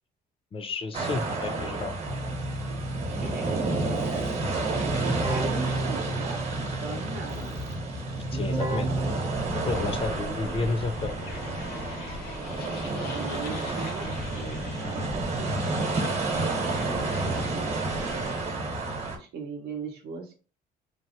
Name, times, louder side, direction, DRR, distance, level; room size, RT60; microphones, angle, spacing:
voice 1, 0.5-1.9 8.3-8.9 9.7-11.2 16.9-17.0, left 3 dB, 35° left, 8 dB, 0.5 m, -31 dB
sound 1, 0.9-19.2, right 2 dB, 40° right, 0.9 m, -31 dB
Keyboard (musical), 1.5-9.8, right 1 dB, 25° right, 0.6 m, -34 dB
voice 2, 3.2-4.4 4.7-7.7 8.7-9.1 9.8-10.8 12.3-12.7 13.0-15.5 17.1-18.5 19.1-20.3, right 4 dB, 70° right, 0 dB, 0.7 m, -40 dB
sound 2, 9.3-18.7, left 2 dB, 65° left, 0.7 m, -41 dB
3.2 x 2.0 x 2.8 m, 0.34 s
cardioid pair, 110°, 17 cm